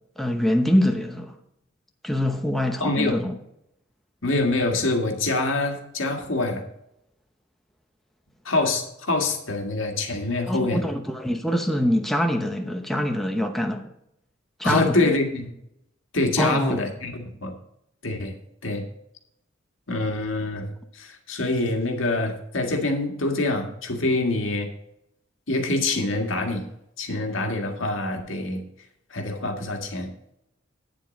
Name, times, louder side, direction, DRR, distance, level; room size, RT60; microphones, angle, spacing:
voice 1, 0.2-1.3 2.0-3.3 10.5-13.8 14.6-15.1 16.4-16.8, left 1 dB, ahead, 0.9 m, -24 dB
voice 2, 2.8-3.2 4.2-6.6 8.5-10.8 14.6-15.5 16.1-17.5 18.0-18.4 18.6-18.9 19.9-20.7 20.9-24.7 25.5-26.7 27.0-28.6 29.1-30.1, left 2 dB, 75° left, 1.9 m, -25 dB
9.5 x 7.4 x 5.2 m
head